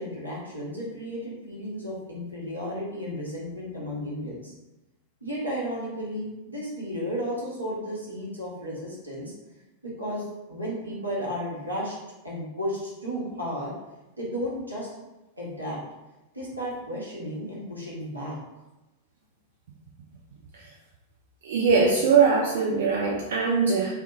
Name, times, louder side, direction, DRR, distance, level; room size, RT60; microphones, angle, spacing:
voice 1, 0.0-4.5 5.2-9.3 9.8-12.0 12.2-13.7 14.2-14.9 15.4-15.8 16.3-18.4, equal, 85° right, -6 dB, 0.8 m, -33 dB
voice 2, 21.4-23.9, right 5 dB, 60° right, -3 dB, 0.3 m, -22 dB
2.3 x 2.3 x 2.8 m, 1.0 s
figure-of-eight pair, 90°, 0 cm